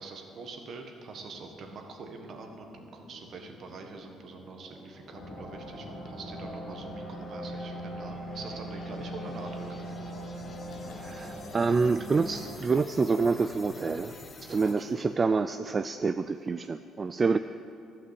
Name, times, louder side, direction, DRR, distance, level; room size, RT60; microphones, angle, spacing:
voice 1, 0.0-10.0 10.8-11.5 14.7-15.0, right 4 dB, 55° right, 3 dB, 1.5 m, -45 dB
sound 1, 1.1-15.1, left 2 dB, 40° left, 1.4 m, -52 dB
sound 2, 5.1-12.5, equal, 65° left, 2.3 m, -40 dB
Gurgling, 10.7-15.4, left 5 dB, 85° left, 1.3 m, -51 dB
voice 2, 10.9-14.1 14.4-17.4, right 4 dB, 35° right, 10 dB, 0.3 m, -27 dB
12.0 x 5.8 x 8.0 m, 2.6 s
supercardioid pair, 65°, 0 cm